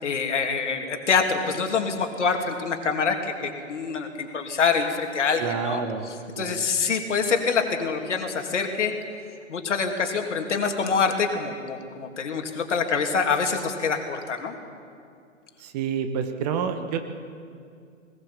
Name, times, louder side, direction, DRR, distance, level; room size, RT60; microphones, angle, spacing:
voice 1, 0.0-8.9 9.5-14.5, left 5 dB, 60° left, 4 dB, 2.8 m, -26 dB
voice 2, 5.4-6.1 6.3-6.7 15.6-17.0, right 7 dB, 30° right, 7 dB, 1.4 m, -28 dB
20.5 x 18.0 x 7.4 m, 2.3 s
figure-of-eight pair, 125°, 39 cm